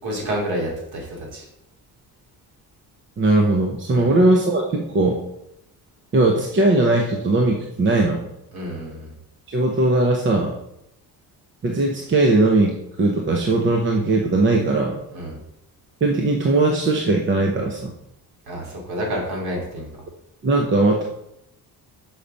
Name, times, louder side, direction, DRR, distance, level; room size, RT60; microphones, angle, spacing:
voice 1, 0.0-1.4 3.9-4.1 8.5-9.1 15.1-15.3 18.5-19.9, equal, 80° right, -2 dB, 3.2 m, -29 dB
voice 2, 3.2-5.2 6.1-8.3 9.5-10.5 11.6-15.0 16.0-17.9 20.4-21.0, right 2 dB, 30° right, 1 dB, 0.8 m, -19 dB
7.0 x 5.7 x 5.1 m, 0.82 s
cardioid pair, 170°, 38 cm